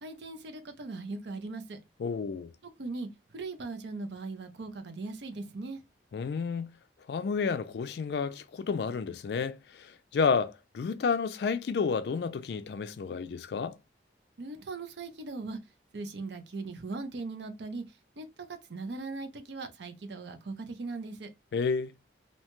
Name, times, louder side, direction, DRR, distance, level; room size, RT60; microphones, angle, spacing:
voice 1, 0.0-1.8 2.6-5.8 14.4-15.6 15.9-17.8 18.2-21.3, right 3 dB, 75° right, 0.5 m, -39 dB
voice 2, 2.0-2.5 6.1-6.7 7.1-13.8 21.5-21.9, left 5 dB, 65° left, 0.3 m, -31 dB
2.7 x 2.2 x 2.9 m
head